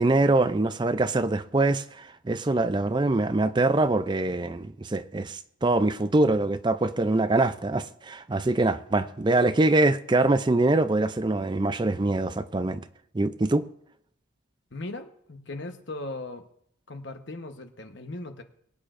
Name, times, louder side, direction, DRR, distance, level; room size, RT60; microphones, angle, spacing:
voice 1, 0.0-12.8 13.1-13.7, right 2 dB, 20° right, 0.4 m, -24 dB
voice 2, 14.7-16.4 16.9-18.4, left 2 dB, 60° left, 1.1 m, -38 dB
22.5 x 8.6 x 2.6 m
head